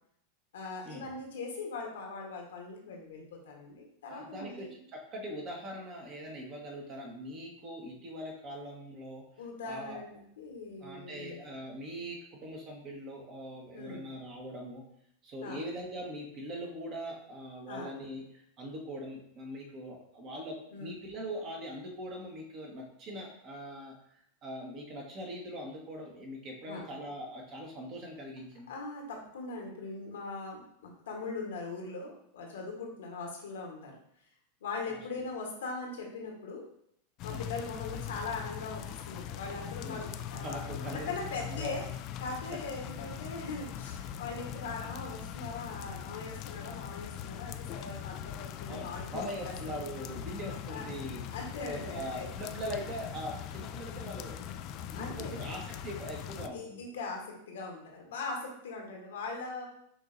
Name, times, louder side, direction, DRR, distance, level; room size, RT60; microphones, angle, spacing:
voice 1, 0.5-4.8 9.4-11.4 13.7-14.0 15.4-15.6 17.7-17.9 20.7-21.0 26.7-26.9 28.7-34.0 34.6-36.7 37.2-41.9 42.2-49.5 49.8-49.9 50.7-50.9 51.3-52.3 54.9-55.4 56.5-59.7, left 3 dB, 75° left, 0 dB, 1.2 m, -40 dB
voice 2, 4.1-9.2 9.6-10.0 10.8-14.8 15.2-23.9 24.4-28.7 34.9-35.0 37.3-37.4 39.8-40.0 40.4-41.2 41.5-41.7 48.7-51.3 51.6-54.5 54.9-56.8, equal, 40° right, 0 dB, 1.3 m, -41 dB
sound 1, 37.2-56.5, left 9 dB, 45° left, 0.3 m, -41 dB
6.3 x 2.8 x 2.6 m, 0.70 s
hypercardioid pair, 100°, 0 cm